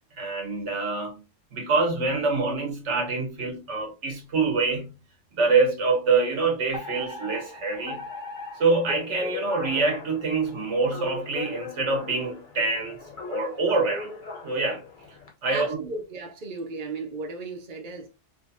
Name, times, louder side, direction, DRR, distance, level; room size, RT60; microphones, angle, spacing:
voice 1, 0.2-1.2 1.5-5.0 5.3-8.0 8.6-13.0 13.3-14.1 14.4-14.8 15.4-15.8, right 3 dB, 80° right, 1.5 m, -25 dB
Alarm, 6.7-15.3, left 4 dB, 45° left, 1.1 m, -39 dB
voice 2, 15.5-18.1, right 3 dB, 45° right, 1.0 m, -35 dB
5.0 x 3.0 x 2.8 m
omnidirectional pair, 1.2 m